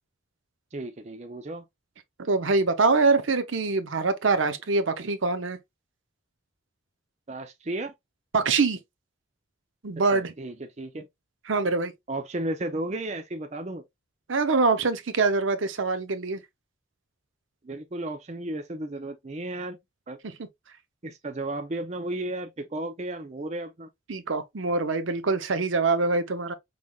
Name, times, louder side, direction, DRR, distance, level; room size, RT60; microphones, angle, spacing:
voice 1, 0.7-1.6 7.3-7.9 10.1-11.1 12.1-13.8 17.6-19.8 20.1-20.2 21.0-23.9, right 1 dB, 35° right, 0.5 m, -34 dB
voice 2, 2.2-5.6 8.3-8.8 9.8-10.3 11.5-11.9 14.3-16.4 20.2-20.5 24.1-26.5, right 3 dB, 70° right, 0.7 m, -24 dB
5.5 x 3.3 x 2.3 m
head